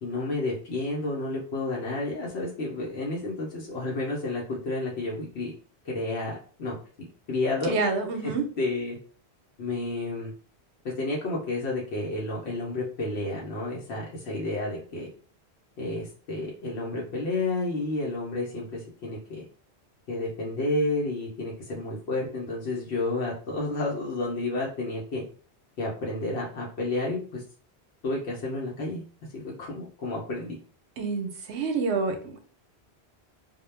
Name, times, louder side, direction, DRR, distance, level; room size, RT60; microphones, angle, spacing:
voice 1, 0.0-5.5 5.8-6.8 7.3-7.7 8.2-9.0 9.6-10.3 10.8-15.1 15.8-19.4 20.1-25.2 25.8-27.4 28.0-29.0 29.3-30.6, left 2 dB, 75° left, -4 dB, 0.9 m, -31 dB
voice 2, 7.7-8.4 31.0-32.5, right 4 dB, 85° right, 5 dB, 0.9 m, -28 dB
2.2 x 2.1 x 3.1 m, 0.43 s
omnidirectional pair, 1.1 m